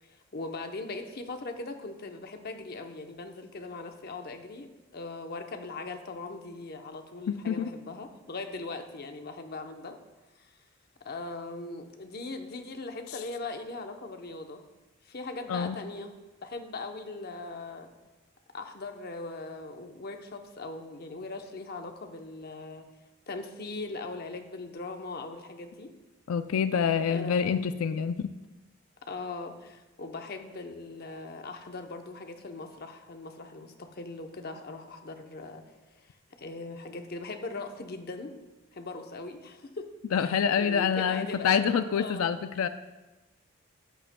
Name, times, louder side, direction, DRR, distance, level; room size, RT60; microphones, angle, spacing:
voice 1, 0.0-10.0 10.3-10.5 11.0-14.6 15.0-16.1 16.4-17.9 18.5-22.9 23.3-25.9 27.1-27.7 29.1-35.6 35.9-38.3 38.7-39.9 40.2-42.3, left 3 dB, 45° left, 5 dB, 0.8 m, -40 dB
voice 2, 7.3-7.7 15.5-15.8 26.3-28.3 40.1-42.7, left 7 dB, 85° left, 10 dB, 0.4 m, -27 dB
13.5 x 8.5 x 2.2 m, 1.1 s
head